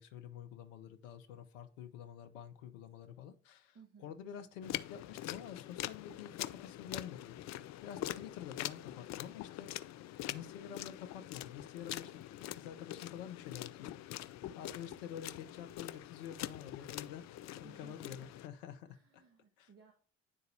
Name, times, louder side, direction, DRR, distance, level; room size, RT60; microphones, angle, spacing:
voice 1, 0.0-7.3 7.8-9.7 10.3-14.0 14.6-18.9 19.1-19.2 19.6-19.7, left 9 dB, 75° left, 8 dB, 0.8 m, -48 dB
voice 2, 3.7-4.1 14.4-14.7 17.6-18.3 18.9-19.9, right 5 dB, 35° right, 2 dB, 1.6 m, -60 dB
sound 1, 4.6-18.5, left 14 dB, 45° left, 0.5 m, -44 dB
11.0 x 3.9 x 2.7 m, 0.41 s
hypercardioid pair, 55°, 39 cm